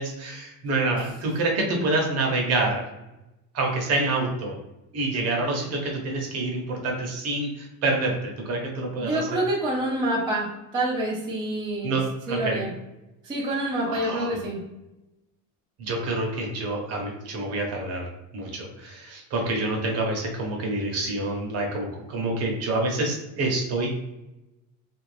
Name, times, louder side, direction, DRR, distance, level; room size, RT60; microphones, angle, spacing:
voice 1, 0.0-2.8 3.5-4.6 4.9-9.4 11.8-12.6 13.9-14.4 15.8-18.1 18.3-24.0, right 2 dB, 40° right, 0 dB, 0.9 m, -27 dB
voice 2, 9.0-12.0 12.3-12.7 13.2-14.6, right 1 dB, 10° right, -6 dB, 0.5 m, -27 dB
3.3 x 2.5 x 3.2 m, 0.95 s
cardioid pair, 175°, 39 cm